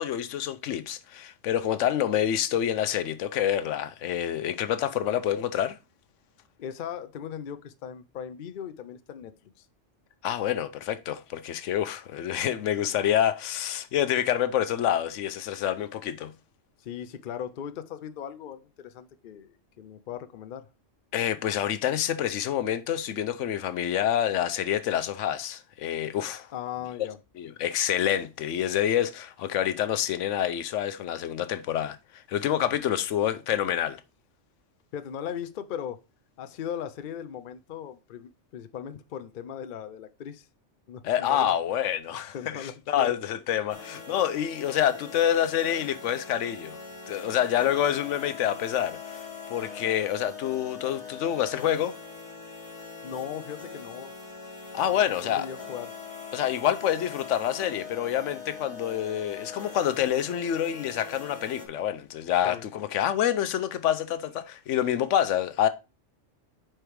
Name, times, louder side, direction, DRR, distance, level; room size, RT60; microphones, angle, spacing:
voice 1, 0.0-5.8 10.2-16.3 21.1-26.5 27.0-27.1 27.4-34.0 41.0-46.8 47.1-49.2 49.5-51.9 54.7-55.5 56.3-65.7, left 10 dB, 75° left, 0.9 m, -27 dB
voice 2, 6.6-9.7 16.8-20.7 26.5-27.2 34.9-36.0 36.4-40.5 40.9-41.6 42.3-43.2 53.0-54.1 54.9-55.9 62.4-62.6, left 9 dB, 55° left, 0.6 m, -38 dB
sound 1, 43.7-61.7, left 5 dB, 30° left, 1.2 m, -42 dB
5.0 x 4.5 x 4.6 m
omnidirectional pair, 1.3 m